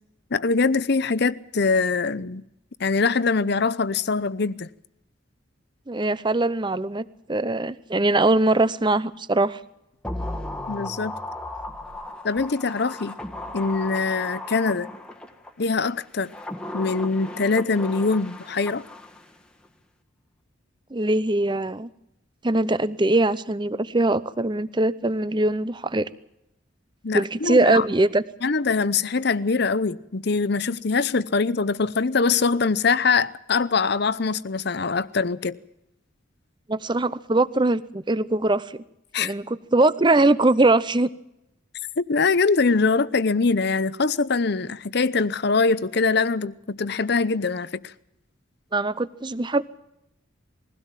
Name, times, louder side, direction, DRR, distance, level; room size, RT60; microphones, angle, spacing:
voice 1, 0.3-2.4 2.8-4.7 10.7-11.1 12.2-13.2 13.5-14.9 15.6-16.3 16.7-18.8 27.0-27.8 28.4-35.6 39.1-39.3 42.0-47.8, left 4 dB, 55° left, 0.7 m, -23 dB
voice 2, 5.9-9.6 20.9-21.9 22.4-26.1 27.1-28.2 36.7-38.8 39.2-41.1 48.7-49.7, right 2 dB, 25° right, 0.7 m, -22 dB
sound 1, 10.0-15.5 16.1-19.4 19.6-19.7, left 1 dB, 5° left, 1.4 m, -35 dB
21.5 x 16.5 x 7.4 m
head